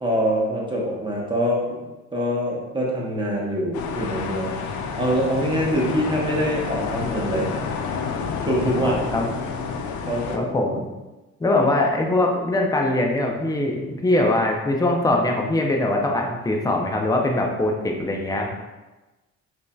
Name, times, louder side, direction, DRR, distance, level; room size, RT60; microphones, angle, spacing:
voice 1, 0.0-1.8 2.1-4.6 5.0-7.5 8.4-8.9 10.1-10.5 11.6-11.7, equal, 15° right, -3 dB, 1.0 m, -24 dB
sound 1, 3.7-10.4, left 5 dB, 75° left, 0.5 m, -29 dB
voice 2, 8.8-9.3 10.3-10.9 11.4-18.5, left 2 dB, 10° left, 1 dB, 0.5 m, -22 dB
5.0 x 2.7 x 2.3 m, 1.1 s
cardioid pair, 90°, 30 cm